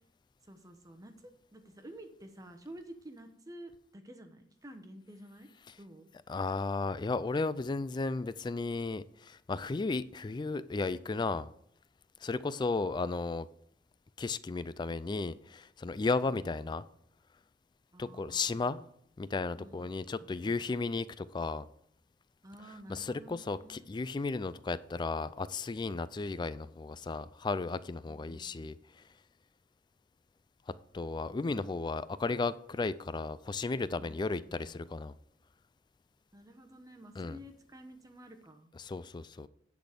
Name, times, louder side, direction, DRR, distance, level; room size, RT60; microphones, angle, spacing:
voice 1, 0.4-5.5 5.8-6.1 17.9-18.9 19.6-20.6 22.4-23.9 28.1-28.8 34.0-34.8 36.3-38.7, right 1 dB, 20° right, 0.9 m, -51 dB
voice 2, 6.3-11.5 12.2-13.5 14.2-16.8 18.0-18.8 19.2-21.7 22.9-29.0 30.9-35.1 37.2-37.4 38.8-39.5, left 3 dB, 25° left, 0.3 m, -34 dB
10.0 x 4.1 x 6.5 m
head